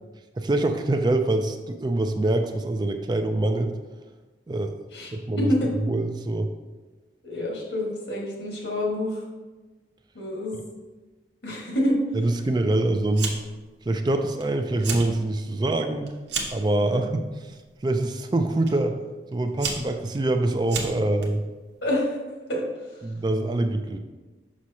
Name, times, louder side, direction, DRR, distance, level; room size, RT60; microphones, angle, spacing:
voice 1, 0.4-3.7 4.5-4.7 5.1-5.5 5.9-6.5 12.1-13.4 13.9-16.1 16.5-19.0 19.3-21.4 23.0-24.0, right 2 dB, 25° right, 6 dB, 0.3 m, -25 dB
voice 2, 5.4-5.7 7.2-9.2 10.2-10.6 11.4-12.0 16.8-17.0 21.8-22.2 22.5-22.9, left 1 dB, 80° left, -2 dB, 1.6 m, -27 dB
Fire, 13.1-13.6 13.9-14.4 14.7-15.1 15.5-16.7 17.4-17.8 18.7-18.8 19.3-21.3, right 4 dB, 85° right, 1.0 m, -32 dB
6.1 x 6.0 x 2.8 m, 1.2 s
head